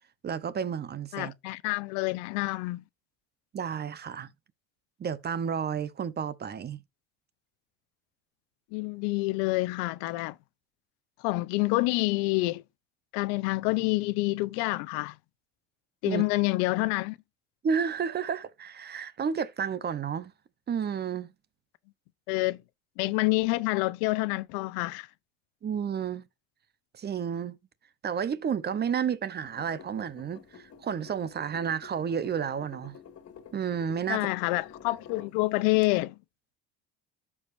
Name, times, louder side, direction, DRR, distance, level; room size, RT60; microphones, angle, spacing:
voice 1, 0.2-1.3 3.5-4.3 5.0-6.8 16.0-16.2 17.6-20.3 20.7-21.3 25.6-26.2 27.0-27.6 28.0-33.0 33.5-34.3, right 7 dB, 30° right, 0.8 m, -31 dB
voice 2, 1.1-2.8 8.7-10.4 11.2-12.6 13.1-15.2 16.0-17.2 22.3-22.6 23.0-25.1 34.1-36.2, left 22 dB, 85° left, 0.6 m, -27 dB
sound 1, 29.4-35.4 35.8-35.9, left 7 dB, 45° left, 2.1 m, -50 dB
13.0 x 4.9 x 2.6 m
supercardioid pair, 110°, 33 cm